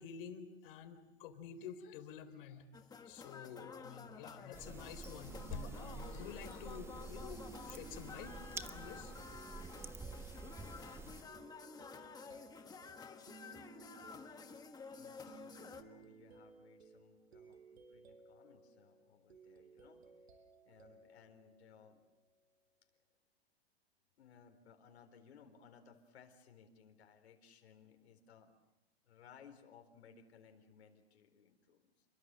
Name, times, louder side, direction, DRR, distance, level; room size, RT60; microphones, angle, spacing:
voice 1, 0.0-2.7 3.0-8.3 8.7-9.1 10.6-11.1, left 8 dB, 55° left, 10 dB, 3.7 m, -50 dB
sound 1, 2.7-15.8, left 5 dB, 10° left, 1.5 m, -52 dB
sound 2, 4.5-11.2, right 4 dB, 10° right, 0.9 m, -49 dB
sound 3, 5.3-22.4, right 5 dB, 80° right, 6.8 m, -60 dB
voice 2, 15.0-20.0 20.3-20.4 20.6-22.1 24.2-28.5 29.0-32.1, left 7 dB, 80° left, 5 dB, 4.3 m, -62 dB
29.5 x 23.0 x 7.7 m, 0.95 s
hypercardioid pair, 145°, 32 cm